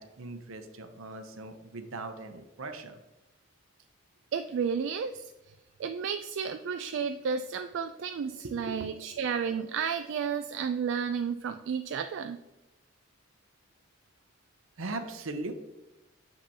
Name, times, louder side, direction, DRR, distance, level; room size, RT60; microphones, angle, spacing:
voice 1, 0.0-3.0 8.4-8.9 14.8-15.5, right 2 dB, 80° right, 8 dB, 0.7 m, -39 dB
voice 2, 4.3-5.2 5.8-12.4, right 6 dB, 65° right, 7 dB, 0.3 m, -32 dB
6.7 x 5.3 x 2.8 m, 1.0 s
head